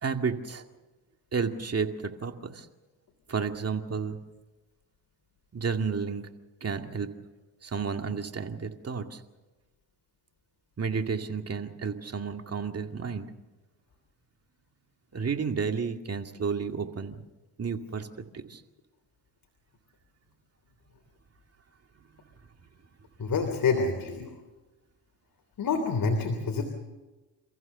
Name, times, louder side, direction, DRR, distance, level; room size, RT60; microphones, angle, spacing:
voice 1, 0.0-0.6 1.3-2.7 3.3-4.2 5.5-6.3 6.6-7.1 7.6-9.2 10.8-13.3 15.1-17.2 17.6-18.1 18.3-18.6, right 5 dB, 35° right, 5 dB, 2.2 m, -31 dB
voice 2, 23.2-24.3 25.6-26.6, left 4 dB, 50° left, 4 dB, 3.3 m, -27 dB
29.5 x 15.0 x 6.8 m, 1.2 s
cardioid pair, 85°, 43 cm